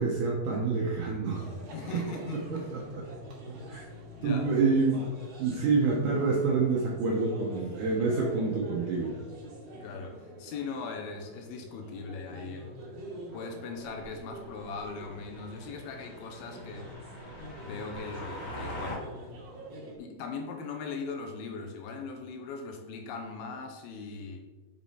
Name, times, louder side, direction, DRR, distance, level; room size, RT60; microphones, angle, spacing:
voice 1, 0.0-1.5 1.9-2.0 2.5-3.1 3.7-3.8 4.2-5.1 5.4-9.1, right 4 dB, 75° right, -2 dB, 1.8 m, -27 dB
sound 1, 1.3-20.0, equal, 45° right, 2.6 m, -45 dB
voice 2, 1.7-2.7 4.1-4.5 7.5-7.7 8.0-8.1 9.8-12.7 13.3-16.9 17.6-19.1 20.0-24.4, left 4 dB, 75° left, 3 dB, 2.5 m, -40 dB
sound 2, 13.8-19.0, equal, 60° left, 1.3 m, -44 dB
7.3 x 6.9 x 4.2 m, 1.3 s
omnidirectional pair, 4.7 m